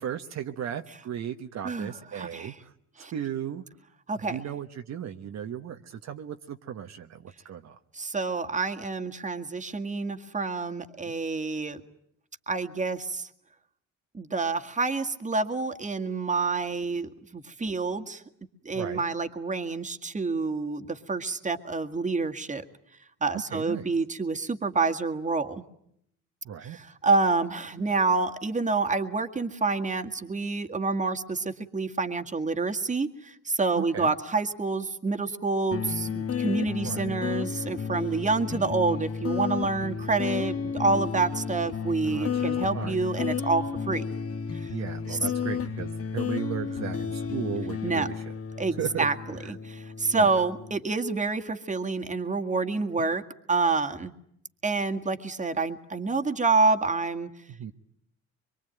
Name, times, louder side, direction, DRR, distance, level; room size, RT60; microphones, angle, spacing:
voice 1, 0.0-3.6 4.2-7.8 11.0-11.2 18.7-19.0 23.3-23.9 26.4-26.8 33.8-34.1 36.8-37.2 42.0-43.0 44.7-48.3 48.8-49.1 49.4-49.6 50.1-50.3 53.0-53.1 57.5-57.7, right 9 dB, 65° right, 6 dB, 1.2 m, -36 dB
voice 2, 1.6-2.5 3.0-3.1 4.1-4.4 7.9-11.8 12.5-13.3 14.1-18.2 18.7-22.6 23.2-25.6 26.6-44.0 44.5-44.7 45.1-45.2 47.8-48.1 48.6-53.2 53.5-54.1 54.6-57.3, right 3 dB, 25° right, 7 dB, 1.9 m, -28 dB
sound 1, 35.7-50.8, left 6 dB, 50° left, 1.3 m, -32 dB
24.5 x 23.5 x 9.2 m, 0.73 s
cardioid pair, 90°, 30 cm